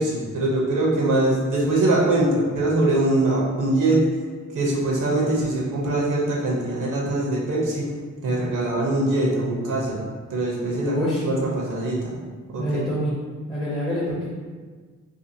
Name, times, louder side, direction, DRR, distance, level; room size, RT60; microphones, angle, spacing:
voice 1, 0.0-4.0 4.5-7.9 8.2-10.0 10.3-11.0 11.2-12.2 12.5-12.6, right 2 dB, 80° right, -3 dB, 0.8 m, -22 dB
voice 2, 10.8-11.2 12.6-13.2 13.5-14.3, equal, 15° left, -7 dB, 0.6 m, -26 dB
2.7 x 2.4 x 2.7 m, 1.5 s
cardioid pair, 85°, 31 cm